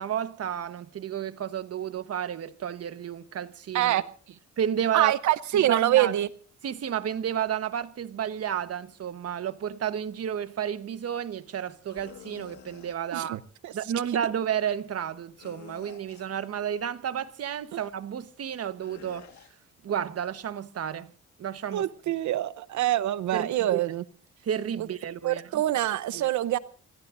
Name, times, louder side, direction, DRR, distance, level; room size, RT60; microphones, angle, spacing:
voice 1, 0.0-4.0 4.6-5.1 5.5-6.1 6.6-13.4 13.7-19.3 19.8-21.1 21.4-21.9 23.3-23.8 24.4-25.6 26.1-26.3, right 9 dB, 55° right, 1.2 m, -31 dB
voice 2, 4.9-6.3 13.1-13.7 21.7-24.0 25.2-26.6, right 13 dB, 70° right, 0.8 m, -25 dB
sound 1, 11.9-13.0 15.4-16.4 18.8-19.5, left 9 dB, 70° left, 1.8 m, -49 dB
28.0 x 15.0 x 2.6 m
cardioid pair, 90°, 30 cm